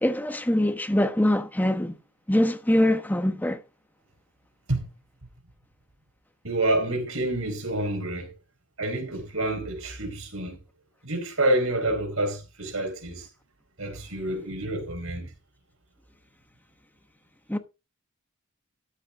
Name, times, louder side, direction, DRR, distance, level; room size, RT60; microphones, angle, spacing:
voice 1, 0.0-2.0 2.3-3.6 17.5-17.6, left 1 dB, 10° left, 1.1 m, -23 dB
voice 2, 6.4-8.3 8.8-10.6 11.0-13.3 13.8-15.3, right 1 dB, 75° right, 4.5 m, -28 dB
13.0 x 8.4 x 3.6 m
head